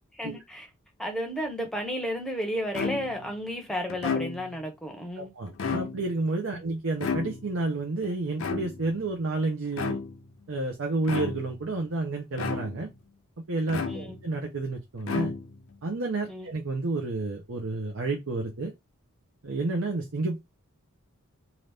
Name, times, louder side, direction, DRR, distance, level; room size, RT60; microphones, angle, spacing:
voice 1, 0.2-0.7 1.0-5.3 6.5-6.6 13.9-14.2 16.3-16.5, equal, 5° left, 0.7 m, -33 dB
sound 1, 2.7-3.3 3.9-4.7 5.5-6.2 7.0-7.7 8.4-9.0 9.7-10.3 11.0-11.6 12.4-13.0 13.7-14.4 15.0-15.7, left 5 dB, 70° left, 0.6 m, -32 dB
voice 2, 5.2-10.0 10.5-12.9 13.5-15.3 15.8-18.7 19.4-20.4, right 2 dB, 70° right, 0.8 m, -30 dB
2.9 x 2.5 x 3.4 m
head